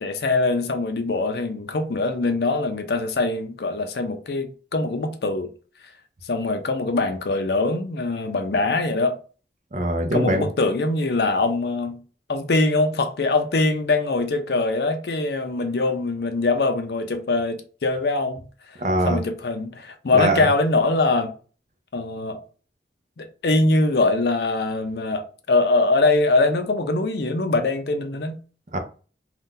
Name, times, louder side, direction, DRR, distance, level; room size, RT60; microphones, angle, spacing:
voice 1, 0.0-5.5 6.2-9.2 10.1-12.0 12.3-18.8 19.0-21.3 21.9-22.4 23.2-28.4, left 2 dB, 65° left, 0.5 m, -23 dB
voice 2, 9.7-10.5 18.8-19.2 20.1-20.5 28.7-28.8, right 1 dB, 45° right, 0.6 m, -22 dB
2.7 x 2.3 x 3.6 m
head